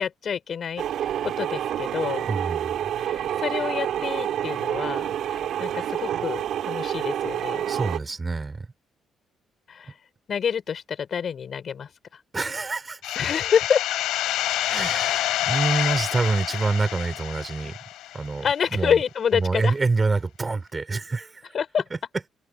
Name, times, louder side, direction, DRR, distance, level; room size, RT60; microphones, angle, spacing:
voice 1, 0.0-2.3 3.0-7.7 9.7-9.9 10.3-11.9 13.2-13.8 18.4-19.7 21.5-21.8, left 7 dB, 55° left, 7.2 m, -27 dB
sound 1, 0.8-8.0, right 10 dB, 75° right, 5.8 m, -28 dB
voice 2, 2.3-2.7 7.7-8.7 12.3-13.2 14.7-17.8 18.1-18.4 18.7-19.0 19.3-21.5, right 3 dB, 25° right, 4.9 m, -26 dB
sound 2, 13.0-18.5, left 14 dB, 85° left, 7.8 m, -27 dB
cardioid pair, 90°, 0 cm